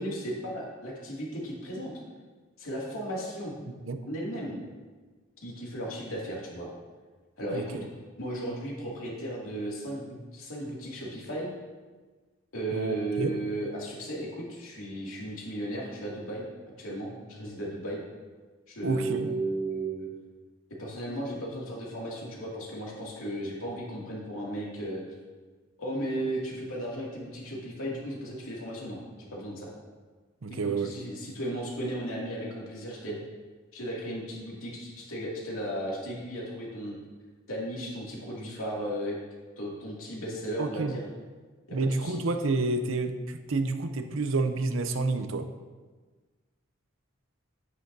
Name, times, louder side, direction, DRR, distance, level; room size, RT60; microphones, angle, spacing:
voice 1, 0.0-1.9 2.6-3.5 4.1-4.6 5.4-6.7 7.4-7.8 8.2-11.5 12.5-16.5 16.8-18.0 18.7-20.1 20.8-25.0 25.8-29.0 29.3-29.7 30.5-30.6 30.8-33.2 33.7-37.0 37.5-39.2 39.6-41.0 41.7-42.1, right 1 dB, 80° left, -4 dB, 2.4 m, -35 dB
voice 2, 3.7-4.0 7.5-7.8 12.7-13.3 18.8-19.3 30.4-30.9 40.6-41.0 41.7-45.5, right 3 dB, 70° right, 8 dB, 0.6 m, -29 dB
9.9 x 9.0 x 2.7 m, 1.4 s
head